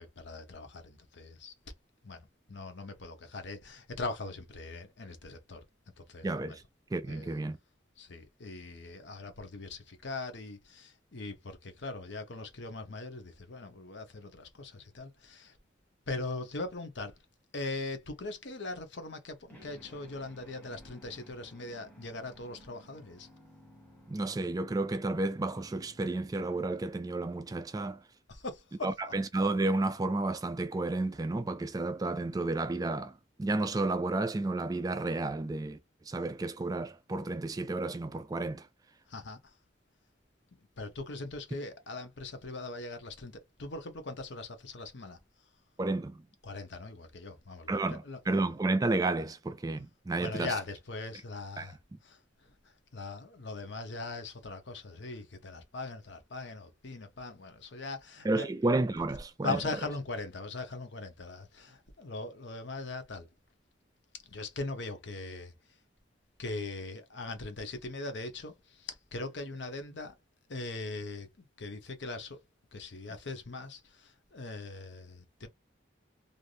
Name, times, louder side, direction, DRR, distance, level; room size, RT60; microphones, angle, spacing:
voice 1, 0.0-1.5 2.0-5.6 6.0-6.6 7.1-7.3 8.0-15.6 16.1-17.1 17.5-23.3 28.3-29.1 39.1-39.5 40.8-45.2 46.4-48.2 50.2-51.8 52.0-52.2 52.9-58.5 59.4-63.3 64.2-65.5 66.4-70.1 70.5-72.4 72.7-75.5, left 3 dB, 60° left, 0.8 m, -40 dB
voice 2, 6.2-6.6 6.9-7.6 24.1-28.0 28.8-35.8 36.1-38.7 45.8-46.2 47.7-50.5 51.6-51.7 58.2-59.6, right 2 dB, 20° right, 0.3 m, -31 dB
sound 1, 19.5-27.7, equal, 10° left, 1.4 m, -57 dB
3.3 x 2.6 x 2.5 m
head